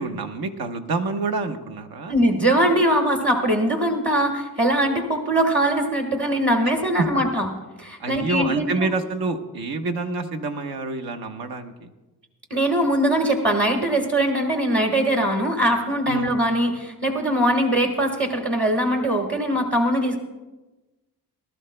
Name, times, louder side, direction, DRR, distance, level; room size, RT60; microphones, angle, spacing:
voice 1, 0.0-2.1 6.9-7.2 8.0-11.9 16.1-16.3, right 3 dB, 70° right, 6 dB, 1.2 m, -27 dB
voice 2, 2.1-7.5 7.8-8.9 12.5-20.2, right 1 dB, 30° right, 2 dB, 1.5 m, -21 dB
20.5 x 12.5 x 2.2 m, 1.1 s
cardioid pair, 85°, 38 cm